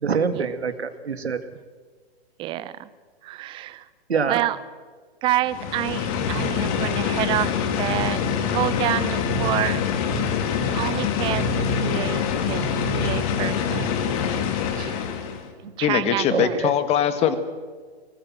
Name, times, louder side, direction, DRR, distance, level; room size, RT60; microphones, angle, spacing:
voice 1, 0.0-1.4 4.1-4.4 14.8-15.0 16.3-16.7, right 5 dB, 85° right, 11 dB, 2.2 m, -25 dB
voice 2, 2.4-2.9 3.2-3.8 4.3-4.6 5.2-9.8 10.7-12.7 12.9-14.0 15.8-16.6, right 14 dB, 15° right, 16 dB, 0.7 m, -28 dB
sound 1, 5.5-15.5, left 6 dB, 35° left, 2.6 m, -25 dB
voice 3, 15.8-17.4, left 9 dB, 20° left, 11 dB, 1.5 m, -21 dB
23.0 x 19.0 x 7.6 m, 1.5 s
hypercardioid pair, 140°, 31 cm